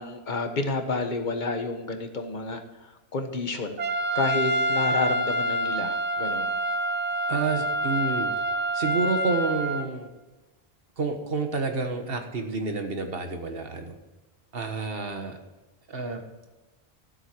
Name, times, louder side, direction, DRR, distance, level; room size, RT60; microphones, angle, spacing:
voice 1, 0.0-3.8 4.1-6.5, left 3 dB, 45° left, 6 dB, 1.3 m, -30 dB
Trumpet, 3.8-9.8, right 1 dB, 45° right, 0.9 m, -27 dB
voice 2, 7.3-8.3 8.7-10.1 11.0-14.0 14.5-15.4 15.9-16.2, right 4 dB, 60° right, 5 dB, 1.6 m, -29 dB
13.5 x 8.0 x 4.6 m, 1.1 s
omnidirectional pair, 1.1 m